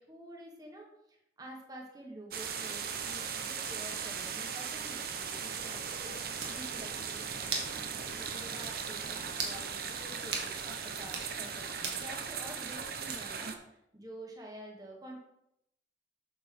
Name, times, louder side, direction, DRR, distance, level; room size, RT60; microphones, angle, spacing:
voice 1, 0.0-6.1 6.5-15.2, right 1 dB, 20° right, 0 dB, 1.5 m, -49 dB
sound 1, 2.3-13.5, right 6 dB, 55° right, 0.9 m, -38 dB
sound 2, 6.4-6.6 7.5-7.8 8.1-8.2 8.6-8.8 9.3-9.6 10.3-10.5 11.0-11.3 11.8-12.0 13.1-13.4, right 5 dB, 80° right, 1.8 m, -37 dB
8.2 x 7.0 x 4.4 m, 0.82 s
head